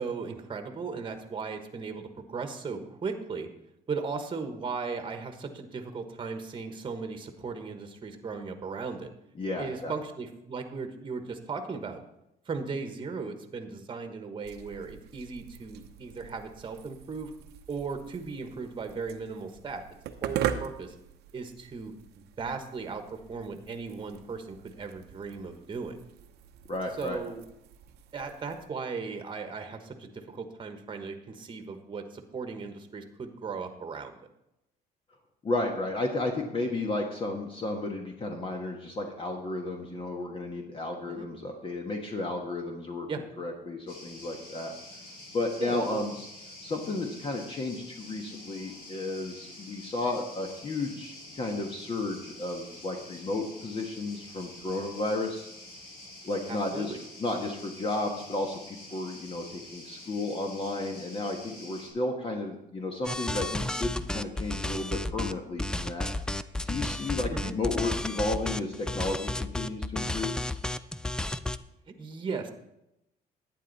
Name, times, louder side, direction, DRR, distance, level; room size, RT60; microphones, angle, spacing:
voice 1, 0.0-3.5 3.9-9.1 9.6-12.0 12.4-17.3 17.7-19.8 20.2-20.9 21.3-21.9 22.4-26.0 27.0-27.4 28.1-34.2 41.1-41.3 43.1-43.2 45.6-46.0 56.5-57.0 67.3-67.5 71.9-72.5, right 4 dB, 30° right, 7 dB, 1.3 m, -37 dB
voice 2, 9.4-9.9 26.7-27.2 35.4-43.1 43.4-44.7 45.3-46.2 46.6-55.4 56.2-56.9 57.2-66.1 66.6-70.3, left 2 dB, 30° left, 2 dB, 1.3 m, -33 dB
sound 1, 14.4-28.7, right 10 dB, 80° right, 0.8 m, -41 dB
sound 2, 43.9-61.9, left 1 dB, 65° left, 4.1 m, -47 dB
sound 3, 63.0-65.3 65.6-71.6, left 1 dB, 5° left, 0.4 m, -32 dB
11.5 x 8.9 x 4.1 m, 0.86 s
cardioid pair, 110°, 17 cm